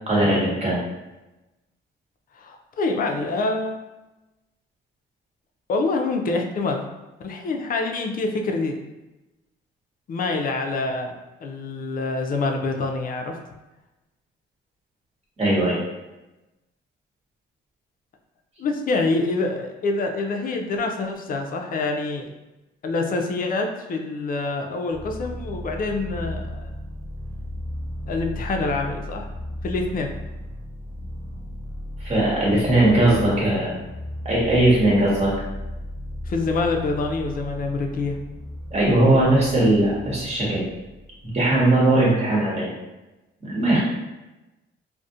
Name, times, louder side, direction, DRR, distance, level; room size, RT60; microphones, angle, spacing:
voice 1, 0.1-0.8 15.4-15.8 32.0-33.8 34.2-35.3 38.7-40.6 41.3-42.7 43.4-43.8, right 1 dB, 35° right, -6 dB, 1.1 m, -19 dB
voice 2, 2.4-3.8 5.7-6.8 7.2-8.8 10.1-11.2 11.4-13.4 18.6-22.3 22.8-26.7 28.1-29.3 29.6-30.2 36.3-38.2, left 3 dB, 45° left, 3 dB, 0.4 m, -26 dB
sound 1, 24.9-41.6, left 1 dB, 15° left, 1.1 m, -35 dB
2.4 x 2.1 x 2.6 m, 1.0 s
cardioid pair, 90°, 20 cm